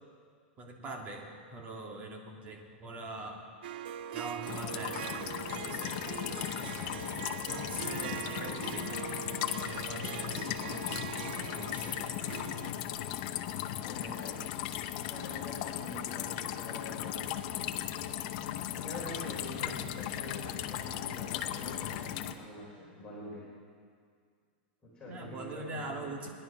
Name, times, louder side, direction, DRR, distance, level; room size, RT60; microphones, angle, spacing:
voice 1, 0.6-3.5 4.1-5.2 5.5-6.8 7.5-9.1 9.6-10.9 11.5-12.0 19.5-19.8 25.1-26.3, right 2 dB, 25° right, 1 dB, 2.0 m, -43 dB
Harp, 3.6-12.7, right 10 dB, 70° right, 0.5 m, -42 dB
sound 1, 4.5-22.3, left 11 dB, 50° left, 0.8 m, -37 dB
voice 2, 13.7-14.4 15.0-17.4 18.8-23.4 24.8-26.1, left 1 dB, 15° left, -7 dB, 3.8 m, -46 dB
18.5 x 11.0 x 6.1 m, 2.1 s
supercardioid pair, 150°, 6 cm